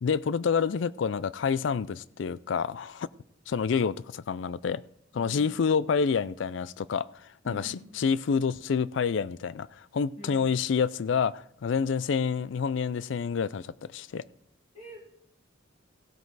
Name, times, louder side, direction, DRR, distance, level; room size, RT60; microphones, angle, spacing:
voice 1, 0.0-3.1 3.5-4.8 5.2-7.1 7.5-14.2, left 6 dB, 70° left, 19 dB, 0.4 m, -28 dB
voice 2, 7.4-7.8 10.2-10.4 14.7-15.0, equal, 40° left, -2 dB, 3.7 m, -44 dB
15.5 x 11.0 x 4.0 m, 0.73 s
head